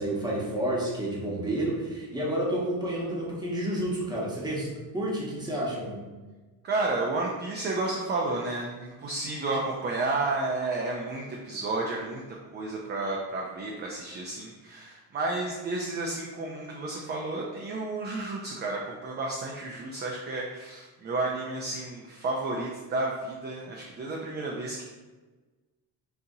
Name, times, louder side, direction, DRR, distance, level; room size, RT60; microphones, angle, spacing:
voice 1, 0.0-6.0, right 1 dB, 10° right, -5 dB, 0.8 m, -30 dB
voice 2, 6.6-12.2 12.5-24.8, right 2 dB, 25° right, -2 dB, 0.3 m, -31 dB
3.8 x 2.8 x 2.7 m, 1.2 s
cardioid pair, 130°, 41 cm